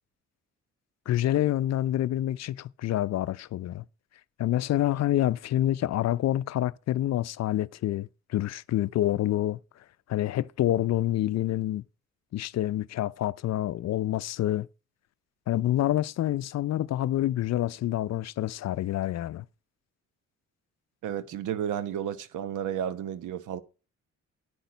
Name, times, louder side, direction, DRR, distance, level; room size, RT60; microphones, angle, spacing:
voice 1, 1.1-3.8 4.4-9.6 10.1-11.8 12.3-14.7 15.5-19.4, left 13 dB, 60° left, 0.5 m, -27 dB
voice 2, 21.0-23.6, right 9 dB, 80° right, 1.1 m, -32 dB
10.5 x 9.2 x 5.2 m
cardioid pair, 90°, 30 cm